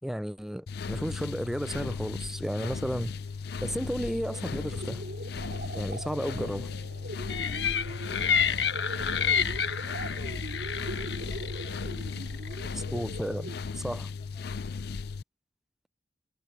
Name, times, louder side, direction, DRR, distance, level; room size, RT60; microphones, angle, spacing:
voice 1, 0.0-3.1 3.6-5.0 5.7-6.7 12.9-14.1, equal, ahead, 0.4 m, -33 dB
sound 1, 0.7-15.2, left 4 dB, 65° left, 0.5 m, -36 dB
sound 2, 3.8-13.8, right 1 dB, 80° right, 3.2 m, -42 dB
sound 3, 7.3-12.7, left 7 dB, 90° left, 1.4 m, -30 dB
voice 2, 7.4-13.1 14.1-15.0, left 2 dB, 35° left, 7.7 m, -58 dB
head